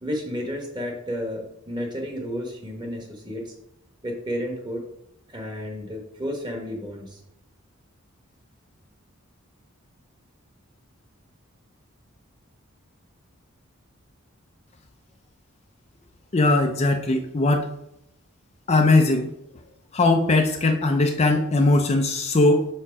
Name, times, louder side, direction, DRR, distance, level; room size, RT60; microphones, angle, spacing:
voice 1, 0.0-3.5 4.0-4.8 5.3-7.2, equal, 20° right, 1 dB, 1.2 m, -32 dB
voice 2, 16.3-17.7 18.7-19.3 19.9-22.7, left 2 dB, 30° left, 4 dB, 0.5 m, -20 dB
4.7 x 4.3 x 5.9 m, 0.80 s
head